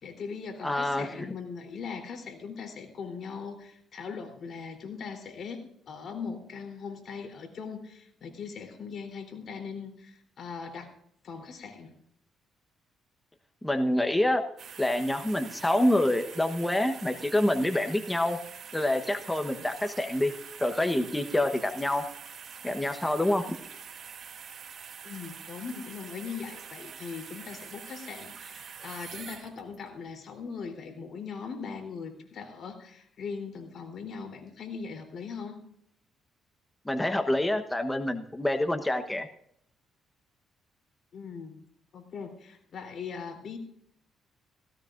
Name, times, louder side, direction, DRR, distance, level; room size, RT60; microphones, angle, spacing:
voice 1, 0.0-10.9 11.2-11.9 25.0-35.6 41.1-41.6 41.9-43.6, left 5 dB, 60° left, 4 dB, 3.5 m, -40 dB
voice 2, 0.6-1.3 13.6-14.4 14.8-18.4 18.7-20.3 20.6-22.0 22.6-23.4 36.8-39.3, left 1 dB, 10° left, 6 dB, 1.1 m, -27 dB
sound 1, 14.6-29.9 30.4-30.5, right 7 dB, 60° right, 2.7 m, -45 dB
17.0 x 17.0 x 2.6 m, 0.67 s
cardioid pair, 90°, 0 cm